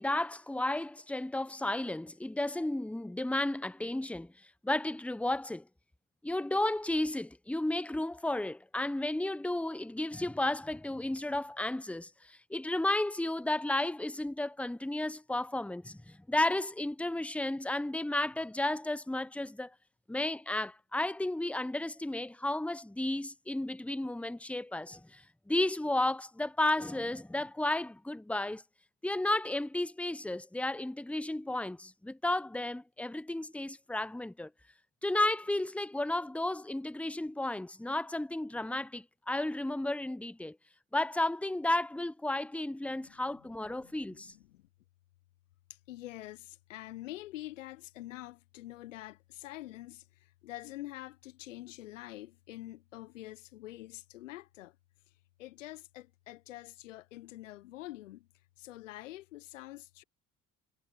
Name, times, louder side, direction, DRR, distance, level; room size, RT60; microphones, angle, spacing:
voice 1, 0.0-4.3 4.6-5.6 6.2-19.7 20.1-28.6 29.0-34.5 35.0-40.6 40.9-44.3, left 1 dB, 5° left, 1.3 m, -33 dB
voice 2, 43.7-44.6 45.9-54.7 55.4-58.3 58.6-60.0, left 16 dB, 75° left, 1.3 m, -46 dB
figure-of-eight pair, 60°, 38 cm